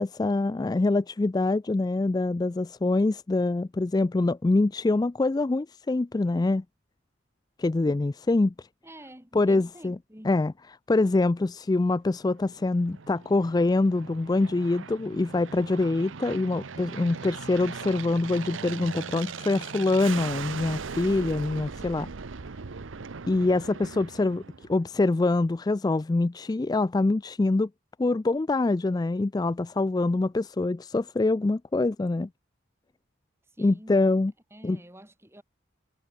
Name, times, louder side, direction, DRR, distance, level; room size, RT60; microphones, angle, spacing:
voice 1, 0.0-6.6 7.6-8.7 9.3-10.0 10.2-10.5 10.9-22.1 23.3-24.4 24.7-27.7 28.0-32.3 33.6-34.3 34.6-34.8, left 2 dB, 20° left, 0.3 m, -25 dB
voice 2, 8.8-10.4 33.4-34.1 34.5-35.4, right 1 dB, 15° right, 5.7 m, -48 dB
Aircraft, 12.2-25.0, right 5 dB, 80° right, 0.8 m, -39 dB
head